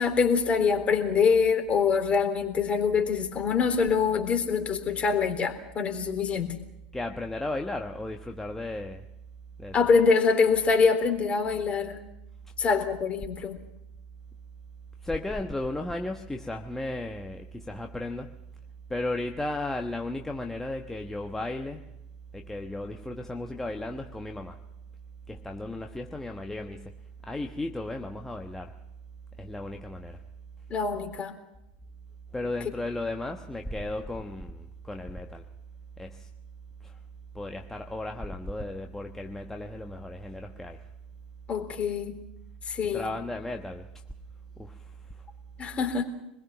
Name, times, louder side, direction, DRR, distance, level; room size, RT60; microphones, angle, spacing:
voice 1, 0.0-6.6 9.7-12.0 12.6-13.6 30.7-31.4 41.5-42.2 42.7-43.1 45.6-46.0, left 5 dB, 30° left, 5 dB, 3.6 m, -24 dB
voice 2, 6.9-9.0 9.6-9.7 15.0-18.3 18.9-21.9 22.3-24.6 25.3-26.9 27.2-28.7 29.4-30.2 32.3-35.4 36.0-36.3 36.8-36.9 37.3-40.8 42.9-43.9 44.6-44.9, left 2 dB, 10° left, 4 dB, 1.3 m, -35 dB
26.0 x 21.0 x 5.9 m, 0.86 s
figure-of-eight pair, 80°, 4 cm